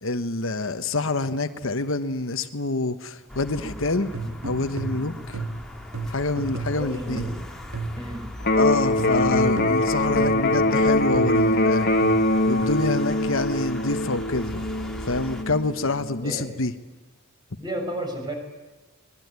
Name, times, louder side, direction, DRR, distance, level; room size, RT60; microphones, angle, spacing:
voice 1, 0.0-4.1 4.4-5.4 6.1-7.2 8.6-11.9 12.5-14.6 15.0-16.7, left 3 dB, 65° left, 10 dB, 1.3 m, -26 dB
sound 1, 3.3-15.4, equal, 5° left, 3.2 m, -40 dB
sound 2, 4.1-8.2 9.0-10.6 11.1-12.7, right 3 dB, 70° right, 2.5 m, -33 dB
voice 2, 6.7-7.3 8.0-8.3 16.2-16.5 17.6-18.3, right 1 dB, 20° right, 3 dB, 6.6 m, -32 dB
Electric guitar, 8.4-16.4, left 1 dB, 45° left, 1.8 m, -23 dB
24.5 x 21.0 x 9.6 m, 1.2 s
head